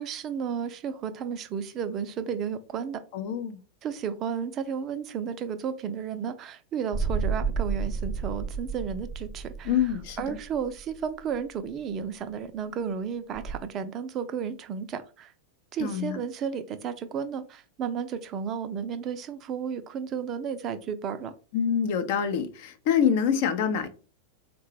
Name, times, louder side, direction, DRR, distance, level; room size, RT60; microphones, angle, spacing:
voice 1, 0.0-3.0 3.8-9.7 10.2-15.3 15.7-21.3, right 7 dB, 30° right, 0.4 m, -33 dB
voice 2, 3.1-3.6 9.6-10.4 15.8-16.2 21.5-23.9, left 8 dB, 50° left, 0.5 m, -26 dB
sound 1, 6.9-11.4 13.3-13.6, right 5 dB, 20° left, 0.8 m, -31 dB
3.9 x 2.2 x 3.1 m
figure-of-eight pair, 90°, 0 cm